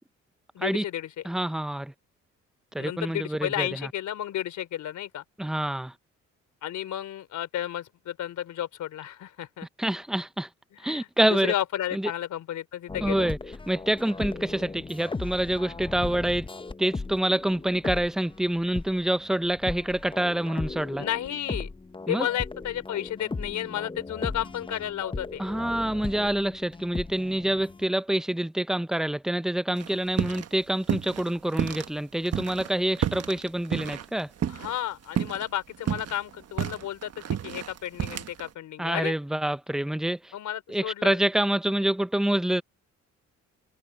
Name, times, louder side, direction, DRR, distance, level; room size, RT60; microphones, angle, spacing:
voice 1, 0.5-1.1 2.8-5.2 6.6-9.7 10.8-13.3 21.0-21.7 22.1-25.4 34.5-39.1 40.3-41.2, left 11 dB, 75° left, 3.5 m, -32 dB
voice 2, 1.2-1.9 2.7-3.9 5.4-5.9 9.8-10.5 10.8-11.5 11.9-12.1 13.0-13.4 13.7-16.5 16.8-21.0 22.1-22.3 25.4-34.3 38.8-40.3 40.7-42.6, right 1 dB, ahead, 0.5 m, -27 dB
sound 1, 12.9-27.8, left 3 dB, 15° left, 0.9 m, -37 dB
sound 2, 29.8-30.5 30.8-31.9 32.3-34.8 35.2-35.4 35.7-38.5, right 10 dB, 55° right, 1.4 m, -30 dB
cardioid pair, 90°, 30 cm